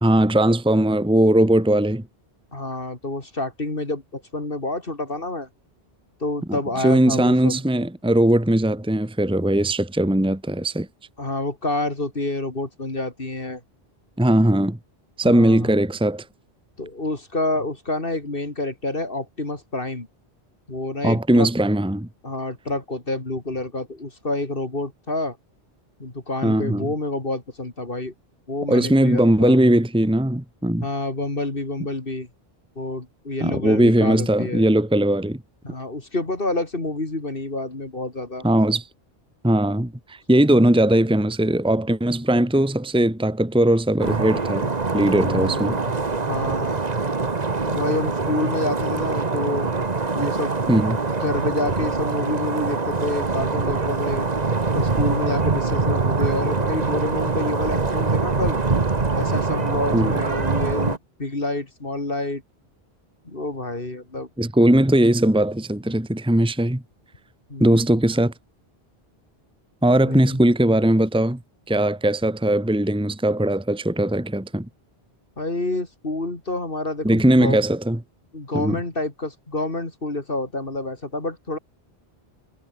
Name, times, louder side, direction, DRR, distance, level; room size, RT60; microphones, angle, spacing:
voice 1, 0.0-2.0 6.8-10.9 14.2-14.8 15.2-16.2 21.0-22.1 26.4-26.9 28.7-30.9 33.4-35.4 38.4-38.8 39.4-45.7 50.7-51.0 59.9-60.1 64.4-66.8 67.6-68.3 69.8-71.4 71.7-74.7 77.0-78.0 78.5-78.8, right 1 dB, 5° right, 1.3 m, -19 dB
voice 2, 2.5-5.5 6.2-7.6 11.2-13.6 15.2-15.7 16.8-20.1 20.7-21.5 22.2-25.4 26.0-28.1 28.5-29.6 30.8-32.3 32.8-34.7 35.6-38.5 45.1-46.0 46.2-46.8 47.7-49.7 50.1-50.5 51.2-54.3 54.7-58.6 59.1-62.4 63.3-64.3 67.5-67.8 69.9-70.4 75.4-77.6 78.3-81.6, left 2 dB, 55° left, 3.7 m, -28 dB
sound 1, 44.0-61.0, right 4 dB, 40° right, 1.6 m, -24 dB
omnidirectional pair, 1.1 m